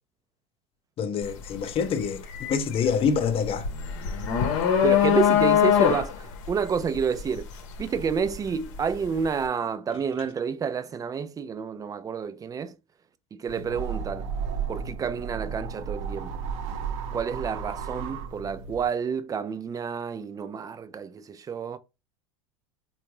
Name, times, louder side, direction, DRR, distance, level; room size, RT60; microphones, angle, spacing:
voice 1, 1.0-3.7, left 6 dB, 35° left, 0.6 m, -26 dB
sound 1, 1.2-1.5 1.8-8.9, left 9 dB, 70° left, 0.8 m, -23 dB
voice 2, 4.8-7.5 7.8-12.7 13.3-14.3 14.7-16.4 17.1-21.8, right 6 dB, 20° right, 0.4 m, -29 dB
sound 2, 13.5-18.9, right 6 dB, 65° right, 0.7 m, -34 dB
3.6 x 2.3 x 2.9 m
hypercardioid pair, 100°, 17 cm